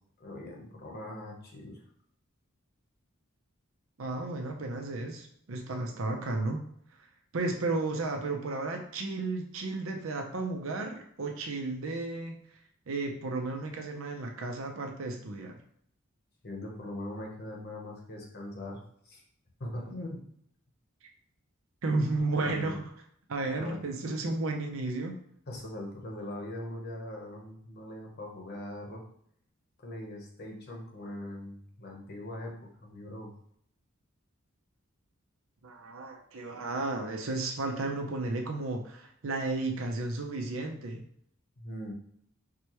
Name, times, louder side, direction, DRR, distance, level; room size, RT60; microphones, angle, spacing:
voice 1, 0.2-1.8 16.4-19.2 19.6-20.2 22.4-22.8 23.6-23.8 25.5-29.0 29.8-32.5 32.8-33.3 36.5-36.6 41.6-41.9, left 1 dB, 50° left, 0 dB, 0.9 m, -41 dB
voice 2, 4.0-6.7 7.3-12.4 12.9-15.5 21.8-22.8 23.3-25.2 35.6-41.0, right 2 dB, 70° right, 3 dB, 0.7 m, -33 dB
4.8 x 2.3 x 3.0 m, 0.67 s
head